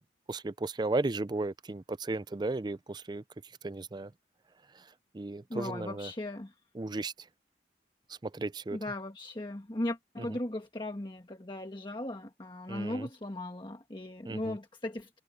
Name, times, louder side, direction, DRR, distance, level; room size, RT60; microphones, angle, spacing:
voice 1, 0.3-3.2 3.6-4.1 4.7-4.9 5.1-6.1 6.7-7.1 8.1-8.8 10.2-10.3 12.7-13.1 14.2-14.6, right 2 dB, 25° right, 0.4 m, -35 dB
voice 2, 5.5-6.5 8.7-15.1, left 1 dB, 25° left, 1.3 m, -37 dB
head